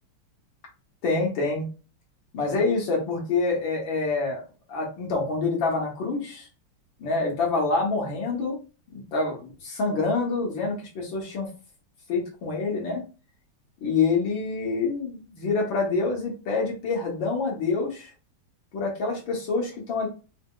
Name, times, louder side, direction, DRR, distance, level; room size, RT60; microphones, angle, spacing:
voice 1, 1.0-1.7 2.3-4.4 4.7-6.5 7.0-8.6 8.9-11.5 12.1-13.0 13.8-18.1 18.7-20.1, left 3 dB, 65° left, -2 dB, 2.0 m, -26 dB
4.9 x 2.1 x 3.7 m, 0.33 s
omnidirectional pair, 2.4 m